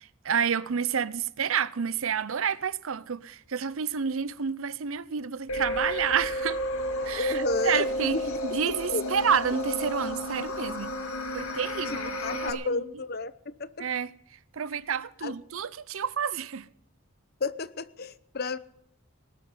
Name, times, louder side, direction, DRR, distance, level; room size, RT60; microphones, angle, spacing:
voice 1, 0.0-6.6 7.0-11.0 11.3-12.8 13.8-14.1 14.5-16.7, right 7 dB, 75° right, 0.6 m, -29 dB
sound 1, 5.5-12.5, equal, 85° left, 2.1 m, -32 dB
voice 2, 7.1-8.4 8.8-9.0 11.9-13.3 13.6-13.8 15.2-15.3 17.4-18.6, left 3 dB, 45° left, 0.8 m, -31 dB
19.5 x 12.5 x 5.6 m
head